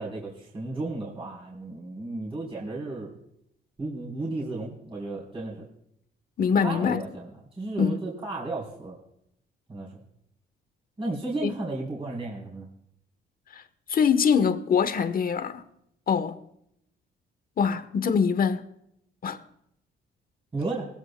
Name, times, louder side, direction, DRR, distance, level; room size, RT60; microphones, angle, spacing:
voice 1, 0.0-3.1 3.8-5.7 6.6-7.3 7.6-9.0 9.7-9.9 11.0-12.7 20.5-20.9, right 2 dB, 30° right, 3.6 m, -33 dB
voice 2, 6.4-7.0 7.8-8.0 11.4-11.5 13.9-15.6 16.1-16.4 17.6-18.7 19.2-19.4, left 6 dB, 45° left, 1.1 m, -23 dB
20.0 x 15.5 x 2.2 m
cardioid pair, 90°, 20 cm